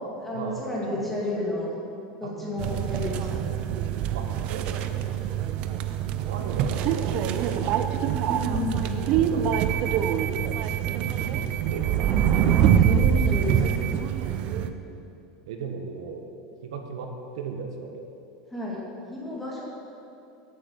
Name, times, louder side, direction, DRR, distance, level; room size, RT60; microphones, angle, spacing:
voice 1, 0.2-1.7 2.2-3.4 8.3-9.2 12.8-13.8 18.5-18.8 19.1-19.6, left 2 dB, 5° left, -5 dB, 2.7 m, -31 dB
voice 2, 0.9-1.4 2.2-3.5 4.1-5.2 6.2-8.1 9.2-10.3 11.2-11.4 11.6-13.0 14.1-15.1 15.5-16.2 16.6-18.1, right 5 dB, 90° right, 4 dB, 1.7 m, -38 dB
sound 1, 2.6-14.7, right 9 dB, 40° right, 0.6 m, -25 dB
12.0 x 8.9 x 7.0 m, 2.7 s
supercardioid pair, 165°, 3 cm